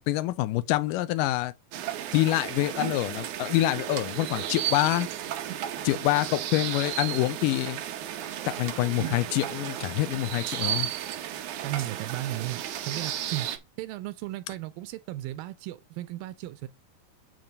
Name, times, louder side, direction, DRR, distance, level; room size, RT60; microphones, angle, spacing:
voice 1, 0.0-1.5 2.1-5.1 5.8-7.8 8.5-10.9, left 16 dB, 80° left, 2.1 m, -26 dB
sound 1, 1.7-13.6, right 11 dB, 70° right, 2.0 m, -34 dB
voice 2, 11.6-13.5 13.8-16.7, right 15 dB, 90° right, 2.4 m, -35 dB
8.9 x 3.0 x 6.5 m
omnidirectional pair, 4.1 m